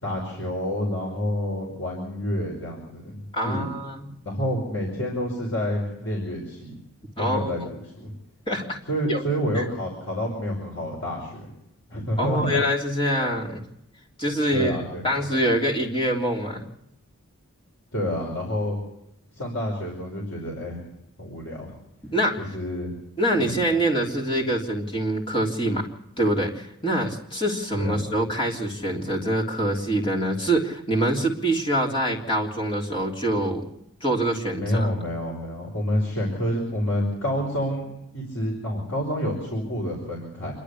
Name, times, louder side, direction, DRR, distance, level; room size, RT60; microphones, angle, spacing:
voice 1, 0.0-3.7 4.2-6.7 7.2-8.1 8.9-11.5 11.9-12.6 14.5-15.2 17.9-18.8 19.3-20.9 21.2-21.8 22.4-22.9 23.4-23.7 27.8-28.0 34.6-37.9 38.1-40.5, equal, 65° left, -1 dB, 5.4 m, -28 dB
voice 2, 3.3-4.1 7.2-7.7 8.5-8.8 9.1-9.2 9.5-9.6 12.2-13.6 14.2-16.6 22.1-22.4 23.2-25.9 26.2-33.6 34.0-34.9, right 1 dB, 25° left, -2 dB, 3.2 m, -25 dB
27.5 x 12.0 x 8.5 m, 0.81 s
head